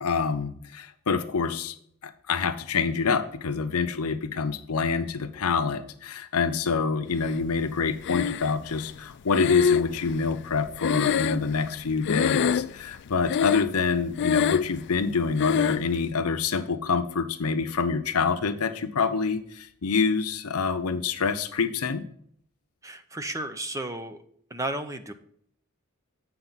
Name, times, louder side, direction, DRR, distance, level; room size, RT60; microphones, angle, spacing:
voice 1, 0.0-1.7 2.0-22.0, left 5 dB, 80° left, 9 dB, 0.7 m, -27 dB
Breathing, 8.0-8.8 9.3-11.8 12.0-12.9 13.2-13.8 14.1-14.8 15.4-15.9, left 7 dB, 55° left, 0.3 m, -25 dB
voice 2, 22.8-24.2 24.5-25.1, right 1 dB, 15° right, 9 dB, 0.6 m, -33 dB
7.8 x 5.9 x 4.0 m, 0.66 s
head